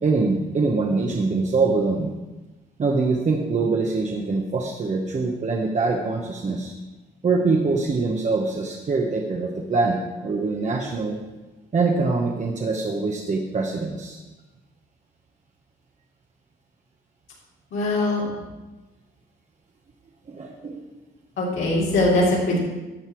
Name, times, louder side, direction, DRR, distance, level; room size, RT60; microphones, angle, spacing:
voice 1, 0.0-2.1 2.8-6.7 7.2-11.2 11.7-14.2 20.3-20.9, right 3 dB, 35° right, 1 dB, 1.1 m, -24 dB
voice 2, 17.7-18.2 21.4-22.6, left 2 dB, 80° left, -6 dB, 3.4 m, -21 dB
12.0 x 6.6 x 4.6 m, 1.1 s
cardioid pair, 90°, 20 cm